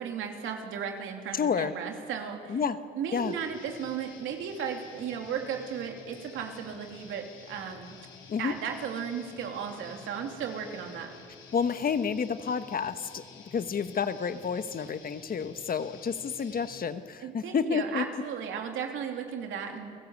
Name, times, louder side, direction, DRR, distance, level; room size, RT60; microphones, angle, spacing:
voice 1, 0.0-2.7 3.0-8.0 8.4-11.1 17.2-19.9, right 7 dB, 80° right, 3 dB, 3.0 m, -35 dB
voice 2, 1.3-1.7 2.5-2.8 3.1-3.3 8.3-8.5 11.5-18.0, left 6 dB, 45° left, 11 dB, 1.3 m, -30 dB
Guitar, 3.1-16.8, left 5 dB, 80° left, 4.2 m, -51 dB
29.0 x 15.5 x 8.5 m, 2.2 s
cardioid pair, 90°, 20 cm